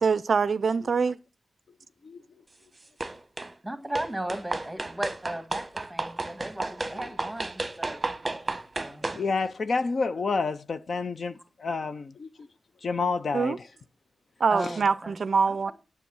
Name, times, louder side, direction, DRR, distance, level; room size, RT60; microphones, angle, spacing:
voice 1, 0.0-1.2 13.3-13.6 14.4-15.7, right 5 dB, 55° right, 0.4 m, -24 dB
sound 1, 3.0-3.5 4.0-9.2, right 2 dB, 20° right, 1.0 m, -33 dB
voice 2, 3.6-8.0 8.8-9.2 14.5-15.2 15.5-15.7, right 1 dB, 5° right, 1.7 m, -36 dB
voice 3, 9.1-12.3 12.8-13.6 14.6-14.7, left 4 dB, 50° left, 0.6 m, -29 dB
10.0 x 7.0 x 6.1 m
wide cardioid pair, 150°, 0 cm